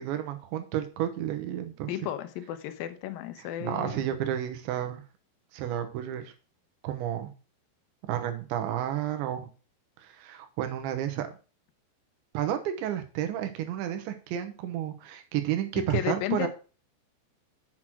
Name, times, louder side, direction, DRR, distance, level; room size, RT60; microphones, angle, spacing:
voice 1, 0.0-1.9 3.4-5.0 5.5-6.3 6.8-7.3 8.1-9.5 10.0-11.3 12.3-16.5, right 11 dB, 85° right, 7 dB, 3.4 m, -31 dB
voice 2, 1.9-4.0 15.9-16.5, left 12 dB, 80° left, 9 dB, 2.0 m, -33 dB
7.5 x 6.3 x 6.0 m, 0.35 s
omnidirectional pair, 5.3 m